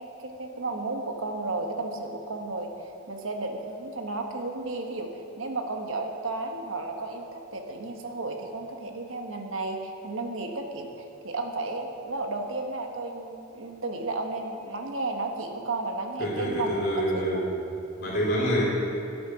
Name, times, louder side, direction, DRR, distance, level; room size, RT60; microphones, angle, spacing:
voice 1, 0.0-16.8 17.1-17.4, right 2 dB, 75° right, 3 dB, 1.2 m, -33 dB
voice 2, 16.2-17.5 18.0-18.6, equal, 50° left, -5 dB, 3.2 m, -26 dB
11.5 x 8.5 x 5.7 m, 2.7 s
head